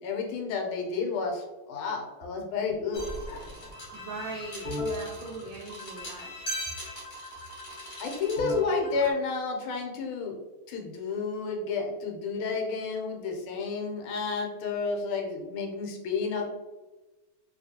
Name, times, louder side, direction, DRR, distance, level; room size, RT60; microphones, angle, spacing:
voice 1, 0.0-3.0 8.0-10.4 10.7-16.4, left 4 dB, 80° left, 2 dB, 1.5 m, -31 dB
sound 1, 2.9-9.1, left 1 dB, 40° left, 0.8 m, -37 dB
voice 2, 3.9-6.3, right 3 dB, 75° right, 0 dB, 1.1 m, -40 dB
3.0 x 2.9 x 2.7 m, 1.1 s
omnidirectional pair, 2.3 m